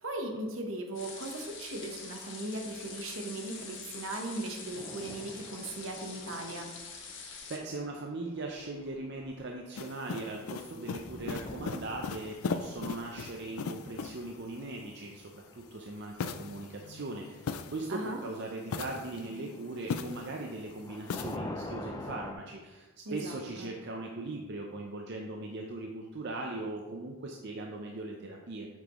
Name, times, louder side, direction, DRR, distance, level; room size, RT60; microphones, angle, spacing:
voice 1, 0.0-6.7 17.9-18.2 23.0-23.7, right 2 dB, 70° right, 3 dB, 1.1 m, -38 dB
sound 1, 0.9-7.6, left 5 dB, 55° left, 1.4 m, -45 dB
sound 2, 4.4-17.3 17.6-17.8 19.3-22.3, left 1 dB, 15° left, 0.4 m, -46 dB
voice 2, 7.5-28.7, right 2 dB, 55° right, 1 dB, 0.6 m, -39 dB
sound 3, 9.7-14.4 16.2-18.1 18.6-20.5 21.1-21.4, left 5 dB, 80° left, 0.4 m, -39 dB
8.4 x 6.1 x 3.1 m, 1.2 s
head